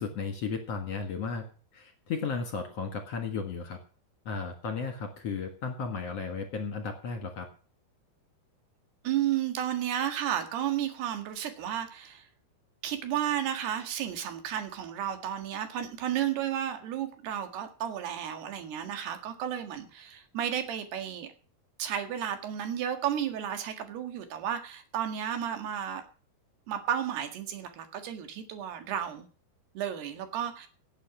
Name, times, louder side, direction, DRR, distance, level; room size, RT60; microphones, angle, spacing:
voice 1, 0.0-1.4 1.7-3.8 4.3-7.5, left 5 dB, 50° left, 5 dB, 2.2 m, -34 dB
voice 2, 9.0-12.3 12.8-21.3 21.8-26.0 26.7-29.3 29.8-30.7, right 10 dB, 90° right, 7 dB, 3.9 m, -32 dB
17.0 x 8.3 x 6.1 m, 0.40 s
omnidirectional pair, 4.5 m